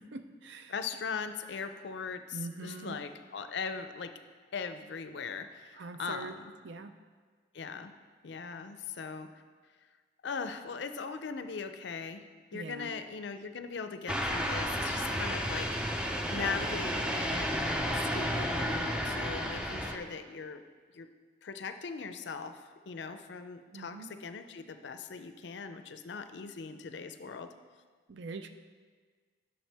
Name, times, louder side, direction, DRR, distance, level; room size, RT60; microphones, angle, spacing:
voice 1, 0.0-0.7 2.3-3.0 5.8-6.3 6.6-6.9 12.5-12.9 23.7-24.1 28.1-28.5, right 3 dB, 65° right, 9 dB, 0.4 m, -43 dB
voice 2, 0.7-4.1 4.5-6.5 7.5-7.9 8.2-9.3 10.2-12.2 12.5-15.7 16.3-20.6 20.9-21.1 21.4-27.5, left 5 dB, 65° left, 9 dB, 0.4 m, -40 dB
sound 1, 14.1-20.0, equal, 5° right, 0.4 m, -32 dB
9.0 x 6.3 x 3.4 m, 1.5 s
head